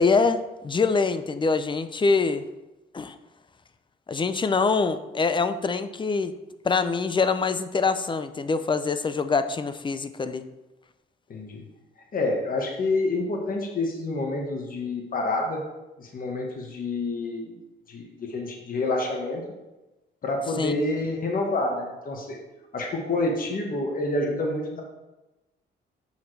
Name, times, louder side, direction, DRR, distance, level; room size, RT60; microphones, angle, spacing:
voice 1, 0.0-2.4 2.9-3.1 4.1-6.3 6.6-10.4 20.6-20.7, left 4 dB, 25° left, 11 dB, 0.5 m, -24 dB
voice 2, 12.1-15.6 16.0-17.6 17.9-19.4 20.2-22.4 22.7-24.8, left 2 dB, 45° left, 1 dB, 1.4 m, -28 dB
7.1 x 5.8 x 3.3 m, 1.0 s
cardioid pair, 90°, 20 cm